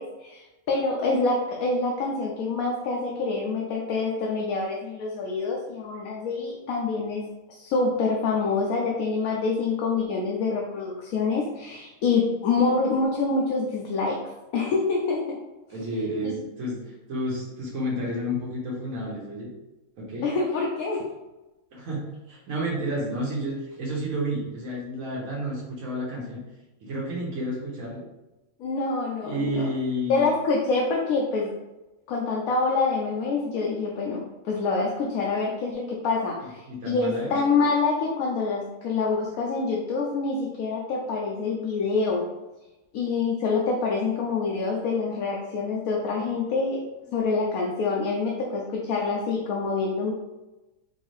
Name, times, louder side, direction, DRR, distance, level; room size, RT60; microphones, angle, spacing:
voice 1, 0.0-14.2 14.5-15.4 16.2-16.3 20.2-21.1 28.6-29.7 30.1-31.5 32.1-42.2 42.9-46.8 47.1-50.1, left 4 dB, 90° left, -1 dB, 1.1 m, -26 dB
voice 2, 15.7-16.8 17.1-19.5 20.0-20.2 21.7-22.0 22.3-26.4 26.8-28.0 29.2-30.3 36.4-37.3, equal, 75° right, -4 dB, 1.4 m, -30 dB
4.5 x 2.6 x 3.2 m, 1.0 s
omnidirectional pair, 1.5 m